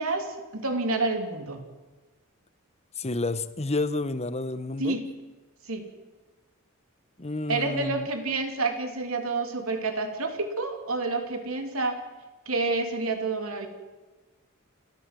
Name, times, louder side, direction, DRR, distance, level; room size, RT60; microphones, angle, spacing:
voice 1, 0.0-1.6 4.8-5.1 5.7-5.9 7.5-12.0 12.5-13.7, right 3 dB, 75° right, 5 dB, 3.1 m, -29 dB
voice 2, 3.0-5.0 7.2-8.1, left 2 dB, 30° left, 13 dB, 1.0 m, -30 dB
28.5 x 14.0 x 7.8 m, 1.2 s
head